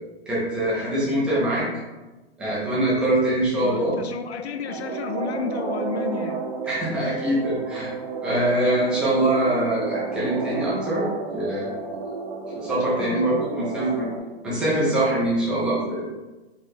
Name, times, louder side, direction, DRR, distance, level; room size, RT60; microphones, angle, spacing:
voice 1, 0.3-1.7 2.4-4.0 6.7-7.9 8.2-11.1 11.3-11.8 12.5-14.1 14.4-16.0, right 1 dB, 5° right, -8 dB, 0.3 m, -23 dB
voice 2, 3.6-6.4 7.0-7.2 13.0-13.4, left 5 dB, 80° left, 7 dB, 0.6 m, -32 dB
sound 1, 4.7-14.2, right 4 dB, 40° right, 0.7 m, -31 dB
4.5 x 2.0 x 4.6 m, 1.1 s
hypercardioid pair, 140°, 33 cm